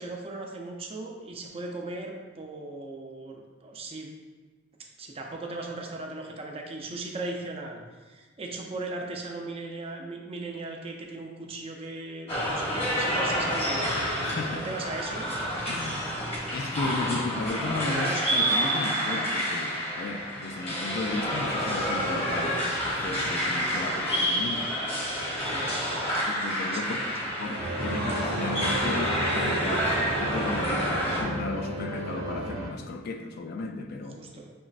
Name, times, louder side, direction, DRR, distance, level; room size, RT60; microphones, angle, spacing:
voice 1, 0.0-4.1 5.0-13.9 14.5-15.3 17.8-18.7 25.5-25.7 26.7-27.2 27.4-27.8 34.2-34.5, right 2 dB, 30° right, 1 dB, 0.5 m, -38 dB
sound 1, 12.3-31.2, equal, 30° left, 1.0 m, -29 dB
voice 2, 14.2-14.7 15.7-16.2 16.5-24.7 26.1-27.0 27.4-34.2, left 3 dB, 50° left, 6 dB, 0.3 m, -34 dB
sound 2, 27.6-32.7, right 1 dB, 75° right, 0.7 m, -33 dB
6.2 x 3.0 x 2.4 m, 1.3 s
head